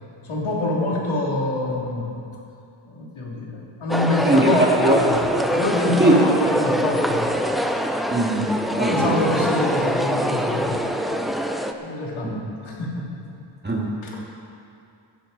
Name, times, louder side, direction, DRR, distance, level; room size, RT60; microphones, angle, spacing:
voice 1, 0.2-2.1 2.9-7.3 8.8-10.9 11.8-13.3 14.0-14.2, left 2 dB, 75° left, -3 dB, 2.8 m, -26 dB
sound 1, 3.9-11.7, equal, ahead, 0.5 m, -24 dB
voice 2, 4.2-5.0 6.0-6.1 8.1-8.5 8.8-9.2 12.2-12.4 13.6-13.9, right 1 dB, 20° right, -3 dB, 2.1 m, -19 dB
15.5 x 15.0 x 4.0 m, 2.5 s
wide cardioid pair, 165°, 49 cm